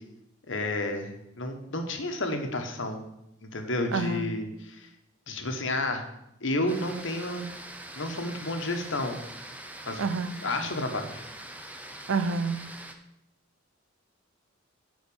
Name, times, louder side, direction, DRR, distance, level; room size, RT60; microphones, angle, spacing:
voice 1, 0.5-3.0 3.4-4.9 5.3-6.0 6.4-7.5 7.9-9.2 9.9-10.0 10.4-11.2, left 2 dB, 65° left, 5 dB, 1.3 m, -31 dB
voice 2, 3.9-4.3 10.0-10.3 12.1-12.6, right 4 dB, 80° right, 12 dB, 0.6 m, -28 dB
sound 1, 6.7-12.9, right 1 dB, 10° right, 0.7 m, -43 dB
9.5 x 4.2 x 6.9 m, 0.84 s
head